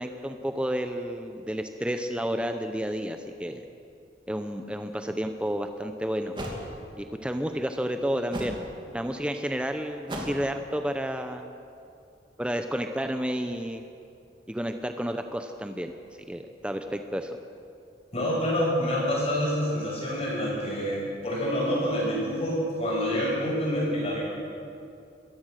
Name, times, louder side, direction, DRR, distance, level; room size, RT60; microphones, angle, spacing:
voice 1, 0.0-3.6 4.3-6.3 7.0-8.6 8.9-11.4 12.4-13.8 14.5-15.9 16.3-17.4, equal, 5° right, 6 dB, 0.7 m, -31 dB
sound 1, 5.5-5.6 6.4-6.6 8.3-8.6 10.1-10.5, equal, 25° right, 2.8 m, -34 dB
voice 2, 18.1-24.2, equal, 35° left, -4 dB, 6.2 m, -27 dB
27.0 x 15.0 x 6.6 m, 2.6 s
head